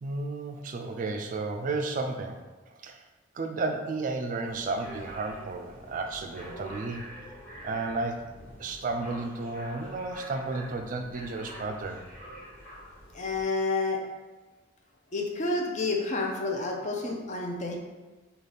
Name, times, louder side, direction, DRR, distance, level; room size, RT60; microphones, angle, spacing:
voice 1, 0.0-2.4 2.8-3.0 3.3-7.1 7.6-8.2 8.6-12.0, right 3 dB, 40° right, 5 dB, 0.3 m, -33 dB
sound 1, 4.4-13.5, equal, 10° left, 1.0 m, -46 dB
voice 2, 13.1-14.0 15.1-17.8, left 3 dB, 35° left, 1 dB, 0.5 m, -29 dB
3.8 x 2.4 x 3.3 m, 1.2 s
head